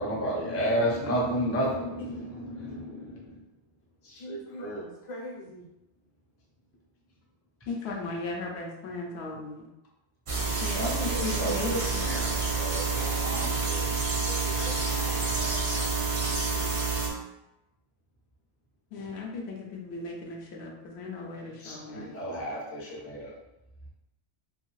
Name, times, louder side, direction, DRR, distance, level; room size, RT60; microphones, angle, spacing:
voice 1, 0.0-3.4 4.0-4.8 10.4-13.9 21.6-23.3, equal, 20° left, -4 dB, 0.4 m, -32 dB
voice 2, 2.0-2.3 4.2-5.7 14.2-16.7, equal, 45° left, -3 dB, 0.7 m, -43 dB
voice 3, 7.7-9.7 10.6-12.1 18.9-22.1, left 3 dB, 75° left, -1 dB, 0.8 m, -36 dB
sound 1, 10.3-17.1, right 4 dB, 45° right, 0.4 m, -28 dB
2.7 x 2.3 x 3.0 m, 0.93 s
omnidirectional pair, 1.1 m